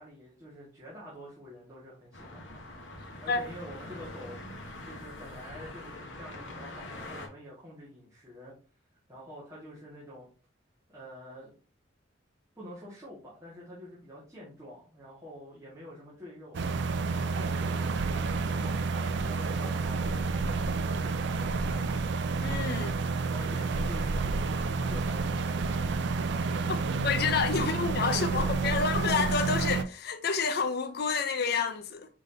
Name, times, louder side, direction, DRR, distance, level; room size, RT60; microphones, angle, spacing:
voice 1, 0.0-2.6 3.2-4.4 4.8-8.5 9.1-10.3 10.9-11.6 12.5-16.6 17.0-18.8 19.2-22.0 23.3-26.0 26.5-26.7 27.5-28.8, equal, 15° right, 1.5 m, -47 dB
sound 1, 2.1-7.3, left 1 dB, 70° left, 1.0 m, -44 dB
sound 2, 16.5-29.8, right 4 dB, 60° right, 0.4 m, -30 dB
voice 2, 22.4-22.9 27.0-32.1, left 5 dB, 55° left, 0.5 m, -29 dB
5.1 x 3.7 x 2.6 m
head